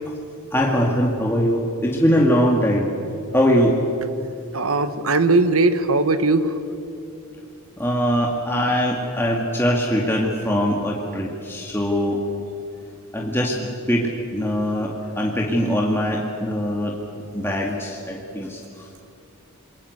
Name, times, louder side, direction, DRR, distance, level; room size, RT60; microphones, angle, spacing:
voice 1, 0.5-2.9 3.3-3.8 7.8-12.2 13.1-17.0 17.3-18.9, equal, 10° left, -1 dB, 2.1 m, -22 dB
voice 2, 4.5-6.5, right 3 dB, 70° right, 11 dB, 1.4 m, -19 dB
27.5 x 22.5 x 8.2 m, 2.6 s
head